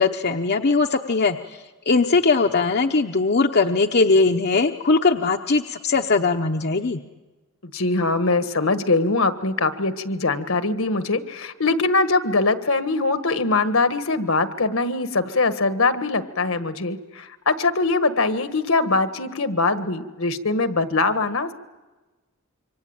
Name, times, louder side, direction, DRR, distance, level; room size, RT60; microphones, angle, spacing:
voice 1, 0.0-1.6 1.9-7.0, left 3 dB, 50° left, 4 dB, 0.9 m, -20 dB
voice 2, 7.7-21.5, left 3 dB, 75° left, 10 dB, 1.6 m, -22 dB
27.0 x 24.5 x 8.9 m, 1.2 s
head